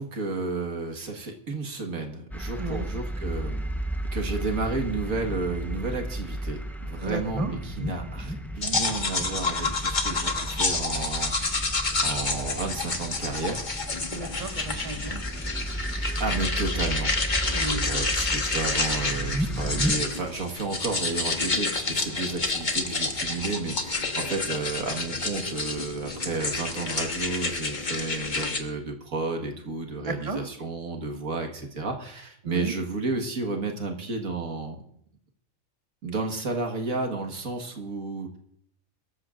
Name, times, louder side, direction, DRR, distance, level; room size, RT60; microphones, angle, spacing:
voice 1, 0.0-3.7 4.1-13.7 16.2-34.8 36.0-38.4, right 3 dB, 70° right, 3 dB, 2.0 m, -32 dB
sound 1, 2.3-19.9, right 1 dB, ahead, 0.7 m, -33 dB
voice 2, 7.0-7.5 14.1-15.2 17.5-17.8 30.0-30.4 32.4-32.7, right 3 dB, 25° right, 3 dB, 1.5 m, -33 dB
sound 2, 8.6-28.6, left 3 dB, 35° left, 1.4 m, -29 dB
23.0 x 13.5 x 2.5 m, 0.70 s
omnidirectional pair, 1.5 m